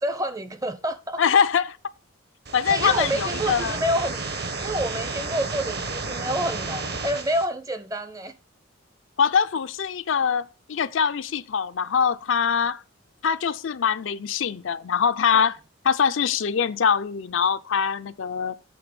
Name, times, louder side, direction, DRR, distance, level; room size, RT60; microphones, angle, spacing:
voice 1, 0.0-1.2 2.7-4.2 4.6-8.4 15.3-15.5, equal, 15° right, 0.6 m, -28 dB
voice 2, 1.2-1.8 2.5-3.8 9.2-12.8 13.2-15.6 15.8-18.5, left 7 dB, 70° left, 0.5 m, -23 dB
sound 1, 2.4-7.4, right 3 dB, 50° right, 1.1 m, -31 dB
7.8 x 4.0 x 6.7 m
head